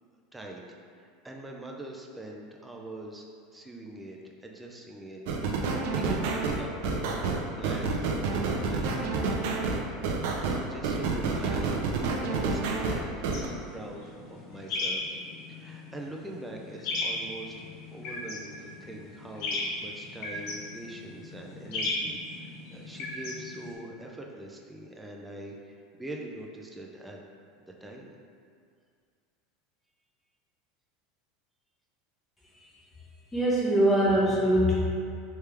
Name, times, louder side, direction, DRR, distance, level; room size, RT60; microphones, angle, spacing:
voice 1, 0.3-3.2 3.5-5.2 6.0-8.2 8.6-9.4 10.7-11.8 12.1-15.0 15.5-27.2 27.6-28.1, right 1 dB, 10° right, 0 dB, 0.4 m, -43 dB
sound 1, 5.3-13.5, right 4 dB, 70° right, 0.4 m, -29 dB
sound 2, 13.3-23.7, left 2 dB, 65° left, 0.8 m, -36 dB
voice 2, 33.3-34.8, right 1 dB, 10° left, -7 dB, 1.0 m, -23 dB
3.3 x 3.2 x 3.2 m, 2.2 s
supercardioid pair, 130°, 0 cm